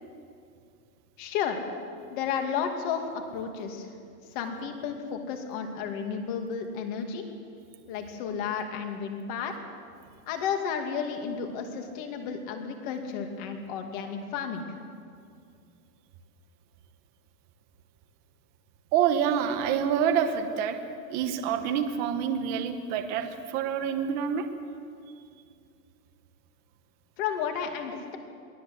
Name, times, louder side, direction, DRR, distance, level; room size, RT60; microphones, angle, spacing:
voice 1, 1.2-1.6 2.1-3.9 4.3-7.2 7.9-9.5 10.3-14.6 27.2-28.2, left 7 dB, 30° left, 4 dB, 2.4 m, -32 dB
voice 2, 18.9-20.8 21.1-24.5, right 8 dB, 20° right, 6 dB, 0.9 m, -27 dB
23.0 x 18.0 x 7.9 m, 2.3 s
supercardioid pair, 175°, 47 cm